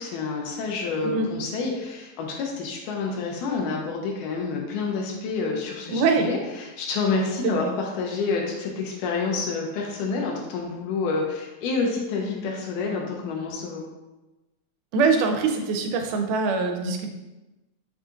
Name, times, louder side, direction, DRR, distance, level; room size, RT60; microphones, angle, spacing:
voice 1, 0.0-13.8, left 4 dB, 90° left, 0 dB, 2.2 m, -28 dB
voice 2, 5.9-6.3 7.4-7.7 14.9-17.1, right 4 dB, 85° right, 5 dB, 2.1 m, -23 dB
5.4 x 3.8 x 2.4 m, 1.1 s
omnidirectional pair, 3.6 m